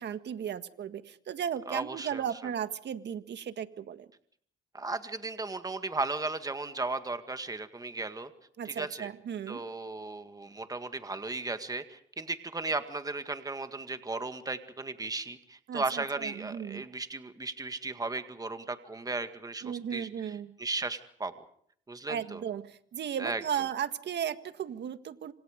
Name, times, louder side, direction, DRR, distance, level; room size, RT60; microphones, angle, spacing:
voice 1, 0.0-4.1 8.6-9.6 15.7-16.8 19.6-20.5 22.1-25.3, right 9 dB, 60° right, 10 dB, 1.6 m, -35 dB
voice 2, 1.7-2.2 4.7-8.3 8.6-9.1 9.5-21.3 21.9-22.4 23.2-23.4, right 3 dB, 20° right, 8 dB, 2.0 m, -36 dB
26.5 x 26.5 x 5.2 m, 0.63 s
cardioid pair, 90°, 20 cm